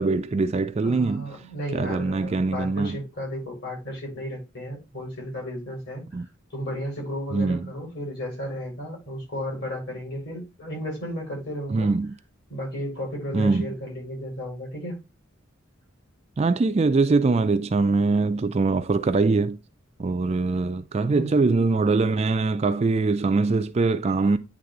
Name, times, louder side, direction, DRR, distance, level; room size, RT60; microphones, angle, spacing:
voice 1, 0.0-1.3 1.7-3.0 6.1-6.3 7.3-7.6 11.7-12.2 13.3-13.7 16.4-19.6 20.0-24.4, right 3 dB, 30° right, 0.3 m, -22 dB
voice 2, 0.8-6.0 6.5-11.9 12.5-15.0 21.1-21.5, equal, 55° left, 4.4 m, -34 dB
9.4 x 3.4 x 3.8 m
head